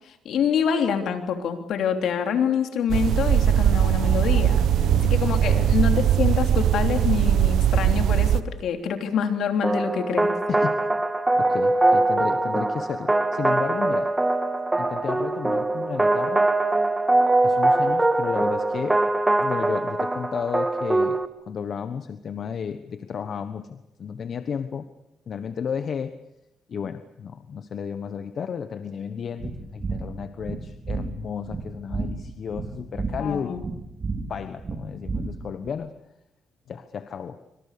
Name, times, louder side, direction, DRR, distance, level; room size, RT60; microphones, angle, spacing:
voice 1, 0.2-4.6 5.0-10.3 33.2-33.7, left 7 dB, 75° left, 6 dB, 3.3 m, -26 dB
sound 1, 2.9-8.4, right 10 dB, 75° right, 1.1 m, -20 dB
voice 2, 4.7-5.8 10.5-10.8 11.4-14.1 14.8-16.5 17.4-19.0 19.4-24.9 25.3-26.1 26.7-33.6 34.3-35.9 36.7-37.4, left 7 dB, 55° left, 11 dB, 1.2 m, -33 dB
sound 2, 9.6-21.3, right 2 dB, 15° right, 1.7 m, -22 dB
sound 3, 29.4-35.7, right 4 dB, 40° right, 4.5 m, -32 dB
26.0 x 25.5 x 6.8 m, 0.86 s
cardioid pair, 90°, 0 cm